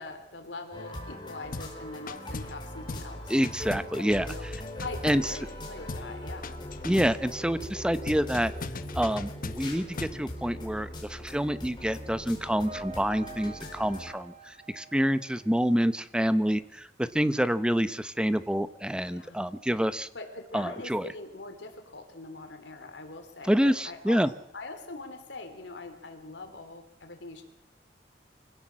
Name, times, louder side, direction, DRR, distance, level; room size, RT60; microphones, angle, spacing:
voice 1, 0.0-3.3 4.0-4.4 4.8-6.6 19.1-19.4 20.1-24.2 24.5-27.4, left 3 dB, 75° left, 6 dB, 3.2 m, -42 dB
sound 1, 0.7-14.1, equal, 25° left, 4.4 m, -40 dB
sound 2, 1.5-1.8 2.1-2.6 2.9-3.1 3.4-5.6 5.9-6.1 6.4-7.2 8.1-10.2, left 3 dB, 50° left, 1.0 m, -39 dB
voice 2, 3.3-4.3 5.0-5.3 6.8-8.5 8.9-20.1 20.5-21.1 23.5-24.3, equal, 5° right, 13 dB, 0.8 m, -27 dB
sound 3, 11.8-15.8, right 3 dB, 45° right, 2.2 m, -47 dB
24.5 x 16.5 x 7.5 m, 0.82 s
head